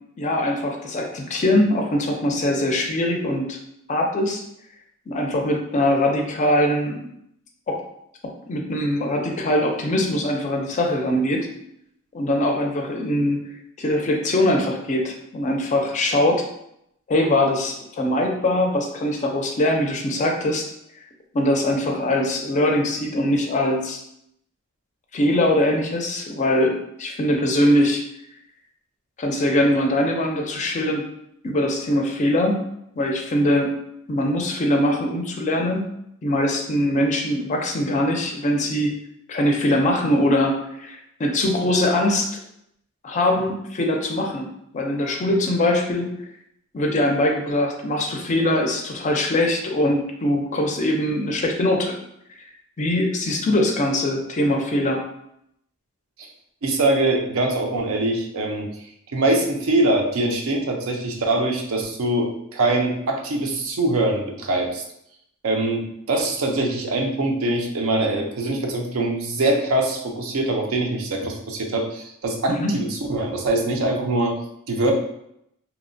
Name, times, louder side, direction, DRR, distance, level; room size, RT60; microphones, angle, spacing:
voice 1, 0.2-3.6 3.9-4.4 5.1-7.1 7.7-7.8 8.2-11.4 12.1-13.4 13.8-16.4 17.1-20.6 21.3-24.0 25.1-28.0 29.2-31.0 31.4-32.6 33.0-33.7 34.1-35.9 36.2-38.9 39.3-42.3 43.0-44.5 44.7-46.1 46.7-52.0 52.8-55.0 72.5-72.7, left 1 dB, 35° left, 2 dB, 0.4 m, -22 dB
voice 2, 56.6-58.7 59.1-64.8 65.4-74.3 74.7-74.9, right 2 dB, 75° right, 2 dB, 0.5 m, -23 dB
2.8 x 2.1 x 2.5 m, 0.76 s
head